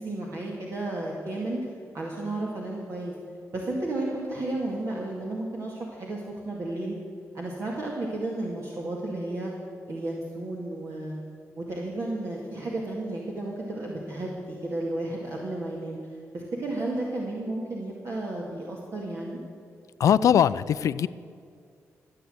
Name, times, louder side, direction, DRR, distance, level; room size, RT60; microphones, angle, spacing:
voice 1, 0.0-3.1 3.5-7.0 7.3-9.5 9.9-11.2 11.6-19.4, right 2 dB, 55° right, -3 dB, 2.1 m, -33 dB
voice 2, 20.0-21.1, left 9 dB, 75° left, 17 dB, 0.4 m, -21 dB
14.5 x 8.4 x 7.9 m, 2.3 s
cardioid pair, 70°, 6 cm